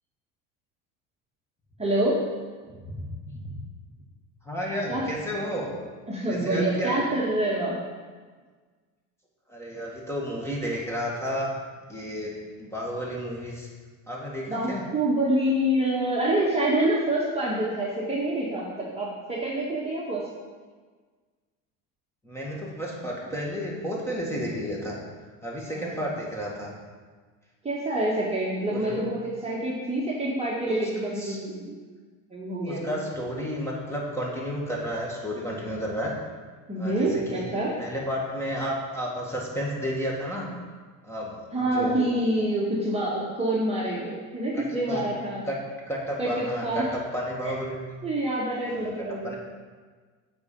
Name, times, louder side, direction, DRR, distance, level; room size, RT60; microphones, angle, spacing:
voice 1, 1.8-2.2 4.9-5.0 5.5-5.6 6.1-7.8 14.5-20.2 26.0-26.1 27.6-31.8 32.3-32.8 36.7-37.7 41.5-45.4 46.2-46.9 47.4-47.5 48.0-49.3, right 1 dB, 15° right, -5 dB, 1.5 m, -26 dB
voice 2, 2.7-3.5 4.4-5.7 6.3-7.0 9.5-11.5 11.9-13.7 14.1-14.8 22.2-25.0 25.4-26.7 28.7-29.1 30.7-30.8 31.0-31.4 32.7-36.2 36.8-37.5 37.8-40.5 41.0-41.3 41.6-42.1 44.5-45.0 45.4-45.6 45.9-47.8 48.7-49.4, equal, 5° left, -3 dB, 1.9 m, -32 dB
7.9 x 4.4 x 5.3 m, 1.5 s
supercardioid pair, 95°, 41 cm